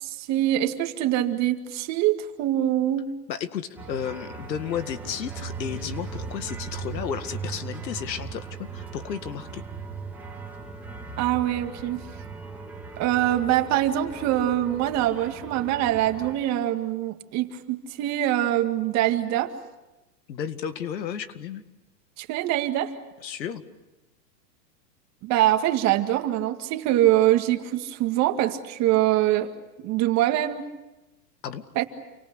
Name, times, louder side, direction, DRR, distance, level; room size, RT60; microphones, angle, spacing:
voice 1, 0.0-3.1 11.2-12.0 13.0-19.5 22.2-22.9 25.2-29.5 29.8-30.7 31.8-31.9, right 13 dB, 35° right, 7 dB, 2.0 m, -24 dB
voice 2, 3.3-9.6 20.3-21.6 23.2-23.6 31.4-31.6, left 8 dB, 85° left, 10 dB, 2.1 m, -33 dB
sound 1, 3.8-16.4, right 4 dB, 5° right, 3.3 m, -38 dB
29.0 x 24.0 x 8.1 m, 1.0 s
hypercardioid pair, 140°, 50 cm